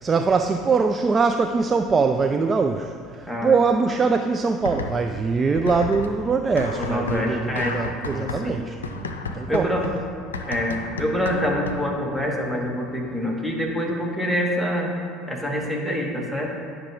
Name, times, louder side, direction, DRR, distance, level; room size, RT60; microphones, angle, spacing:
voice 1, 0.0-9.7, right 4 dB, 30° right, 6 dB, 0.4 m, -22 dB
sound 1, 4.6-5.2 5.6-12.0, left 3 dB, 85° left, 0.4 m, -33 dB
voice 2, 6.8-7.8 8.1-8.6 9.5-9.9 10.5-14.9 15.3-16.5, equal, 5° right, -1 dB, 1.7 m, -26 dB
9.5 x 5.9 x 3.5 m, 2.5 s
hypercardioid pair, 65°, 0 cm